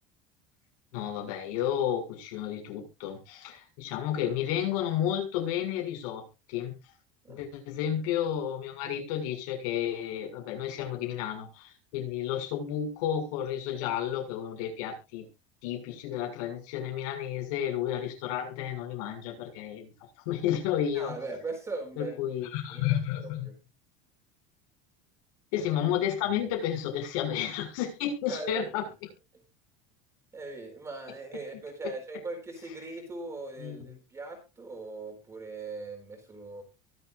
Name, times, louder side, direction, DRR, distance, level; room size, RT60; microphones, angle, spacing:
voice 1, 0.9-6.7 7.3-15.3 15.6-19.9 20.2-21.1 22.0-23.5 25.5-28.8 33.6-33.8, left 10 dB, 70° left, 2 dB, 7.0 m, -31 dB
voice 2, 20.9-22.4 22.7-23.6 25.6-25.7 28.3-28.9 29.3-29.4 30.3-36.6, right 3 dB, 15° right, 3 dB, 4.1 m, -40 dB
23.5 x 8.1 x 2.6 m, 0.28 s
cardioid pair, 165°, 19 cm